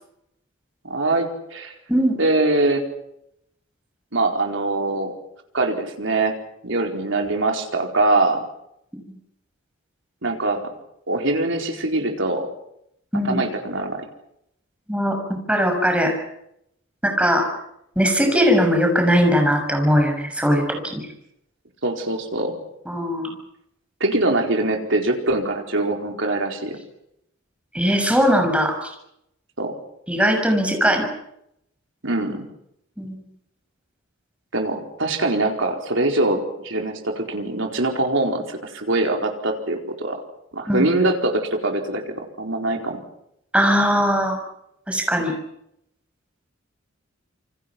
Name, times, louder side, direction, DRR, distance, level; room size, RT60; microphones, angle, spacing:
voice 1, 0.8-1.7 2.2-2.8 4.1-5.1 5.5-6.3 6.6-8.4 10.2-10.6 11.1-12.5 13.2-14.0 21.8-22.5 24.0-26.8 29.6-29.7 32.0-32.5 34.5-40.2 40.5-42.0 42.4-43.0, right 2 dB, 70° right, 3 dB, 4.5 m, -23 dB
voice 2, 15.5-16.2 17.0-17.5 17.9-21.1 22.8-23.3 27.7-28.9 30.1-31.1 33.0-33.2 40.7-40.9 43.5-44.4 44.9-45.4, equal, 5° right, 3 dB, 6.5 m, -20 dB
28.0 x 26.0 x 6.1 m, 0.78 s
head